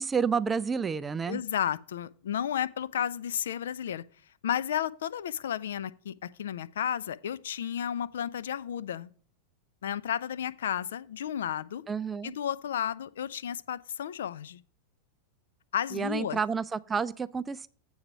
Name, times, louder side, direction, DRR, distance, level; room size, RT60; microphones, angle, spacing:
voice 1, 0.0-1.4 11.9-12.3 15.9-17.7, right 6 dB, 15° right, 0.3 m, -30 dB
voice 2, 1.3-4.0 4.4-9.1 9.8-11.8 12.2-14.6 15.7-16.4, left 9 dB, 60° left, 0.3 m, -32 dB
7.9 x 4.8 x 5.5 m
figure-of-eight pair, 90°, 0 cm